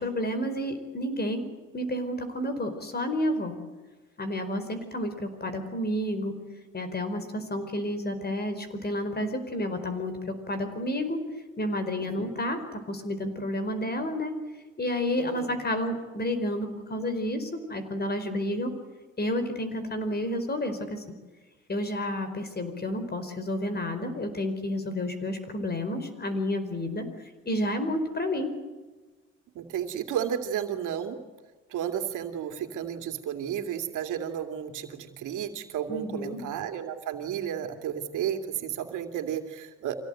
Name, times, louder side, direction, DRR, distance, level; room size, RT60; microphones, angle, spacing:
voice 1, 0.0-1.4 1.7-3.6 4.2-6.3 6.7-11.2 11.6-14.3 14.8-18.7 19.2-21.0 21.7-27.0 27.4-28.5 35.9-36.4, left 1 dB, 30° left, 9 dB, 4.8 m, -30 dB
voice 2, 12.0-12.3 15.2-15.5 29.5-31.2 31.7-40.0, right 9 dB, 85° right, 6 dB, 2.7 m, -33 dB
25.5 x 17.5 x 9.2 m, 1.3 s
cardioid pair, 90°, 30 cm